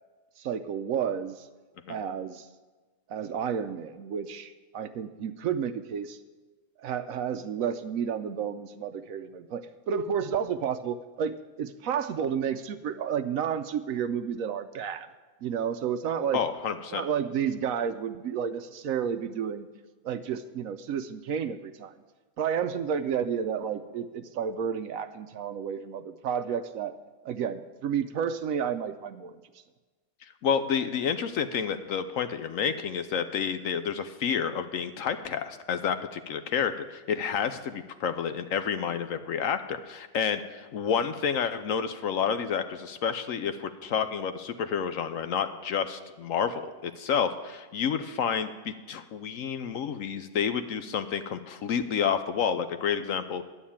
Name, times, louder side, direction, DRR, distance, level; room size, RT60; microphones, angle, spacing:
voice 1, 0.4-1.5 1.9-2.5 3.1-6.2 6.8-15.1 15.4-16.4 16.9-19.7 20.0-22.0 22.4-26.9 27.2-29.4, right 7 dB, 70° right, 10 dB, 0.9 m, -31 dB
voice 2, 16.3-17.0 30.4-53.4, left 7 dB, 65° left, 10 dB, 0.9 m, -29 dB
11.0 x 7.2 x 8.6 m, 1.3 s
omnidirectional pair, 1.7 m